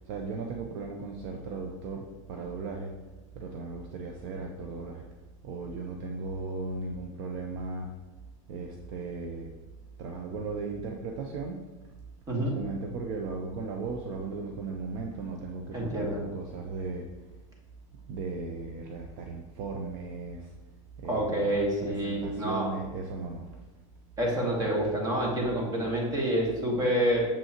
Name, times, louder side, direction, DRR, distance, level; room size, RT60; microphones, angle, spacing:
voice 1, 0.1-3.0 3.3-5.1 5.4-7.9 8.5-9.5 10.0-11.7 12.4-17.1 18.1-20.5 21.0-21.5 21.8-23.6, right 4 dB, 50° right, 2 dB, 0.6 m, -37 dB
voice 2, 12.3-12.6 15.7-16.2 21.1-22.7 24.2-27.2, right 1 dB, 20° right, -1 dB, 1.5 m, -28 dB
6.9 x 5.5 x 2.9 m, 1.1 s
supercardioid pair, 155°, 17 cm